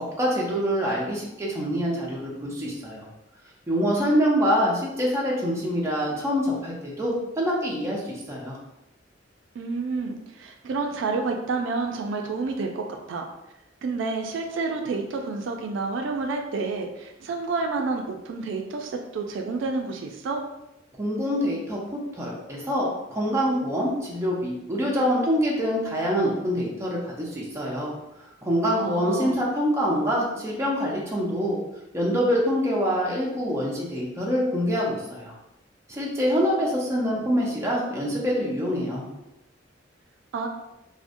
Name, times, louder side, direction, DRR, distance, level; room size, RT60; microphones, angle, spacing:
voice 1, 0.2-3.1 3.7-8.6 21.0-27.9 28.4-31.6 31.9-35.3 35.9-39.1, equal, 15° right, -4 dB, 0.5 m, -25 dB
voice 2, 9.6-13.3 13.8-20.4 28.8-29.4 40.3-40.5, right 3 dB, 75° right, 3 dB, 0.3 m, -29 dB
2.6 x 2.0 x 2.5 m, 0.90 s
head